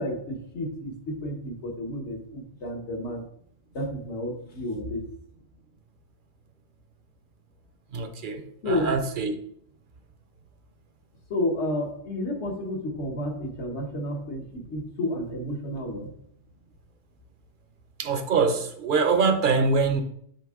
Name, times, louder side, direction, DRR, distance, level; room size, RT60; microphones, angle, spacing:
voice 1, 0.0-3.2 3.7-5.1 8.6-9.1 11.3-16.1, left 1 dB, 70° left, 1 dB, 1.5 m, -31 dB
voice 2, 7.9-9.3 18.0-20.0, right 4 dB, 50° right, 8 dB, 0.7 m, -24 dB
8.5 x 3.6 x 3.6 m, 0.67 s
omnidirectional pair, 1.2 m